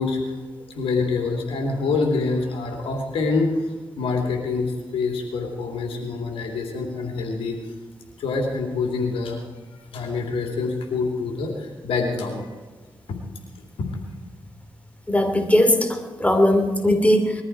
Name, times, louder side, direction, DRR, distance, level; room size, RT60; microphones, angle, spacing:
voice 1, 0.0-7.6 8.2-9.4 9.7-12.5 13.8-13.9, left 4 dB, 85° left, 2 dB, 2.9 m, -26 dB
voice 2, 15.1-17.4, left 1 dB, 15° left, 6 dB, 2.6 m, -19 dB
21.0 x 13.5 x 4.7 m, 1.3 s
cardioid pair, 50°, 9 cm